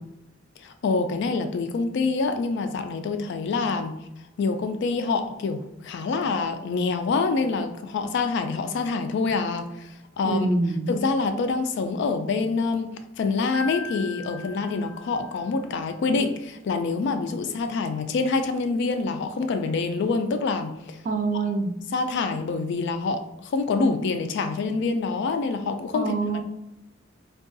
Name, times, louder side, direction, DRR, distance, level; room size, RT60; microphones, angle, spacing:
voice 1, 0.6-4.0 4.4-10.6 10.9-21.0 21.9-26.1, left 4 dB, 60° left, 8 dB, 0.3 m, -26 dB
voice 2, 10.2-10.9 21.0-21.7 25.9-26.4, right 3 dB, 40° right, 6 dB, 0.3 m, -25 dB
Piano, 13.5-15.6, left 4 dB, 5° left, 0.6 m, -38 dB
3.6 x 2.3 x 2.6 m, 0.88 s
head